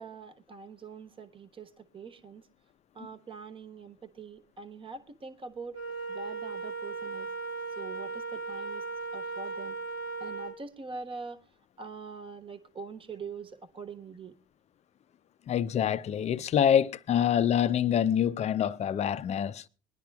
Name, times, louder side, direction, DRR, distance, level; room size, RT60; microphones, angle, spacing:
voice 1, 0.0-2.5 2.9-5.8 6.1-7.3 7.8-8.8 9.1-9.8 10.2-11.4 11.8-14.3, right 4 dB, 30° right, 1.3 m, -43 dB
Wind instrument woodwind instrument, 5.7-10.6, right 3 dB, 65° right, 1.6 m, -37 dB
voice 2, 15.5-19.6, left 9 dB, 35° left, 0.6 m, -26 dB
22.5 x 10.5 x 2.3 m
supercardioid pair, 100°, 18 cm